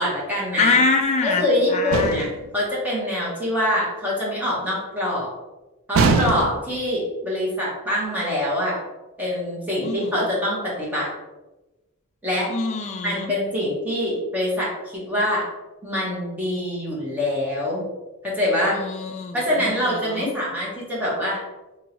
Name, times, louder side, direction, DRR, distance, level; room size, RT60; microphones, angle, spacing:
voice 1, 0.0-0.8 1.2-5.3 5.9-8.8 9.2-11.1 12.2-12.5 13.0-15.5 15.8-17.9 18.2-18.8 19.3-21.4, left 1 dB, 10° right, -6 dB, 1.1 m, -24 dB
voice 2, 0.6-1.4 1.7-2.2 9.8-10.1 12.5-13.3 18.8-19.7 20.1-20.3, left 4 dB, 30° left, 4 dB, 0.3 m, -24 dB
sound 1, 1.9-2.5 5.9-6.8, right 4 dB, 60° right, 0.3 m, -21 dB
3.6 x 3.0 x 3.0 m, 1.1 s
head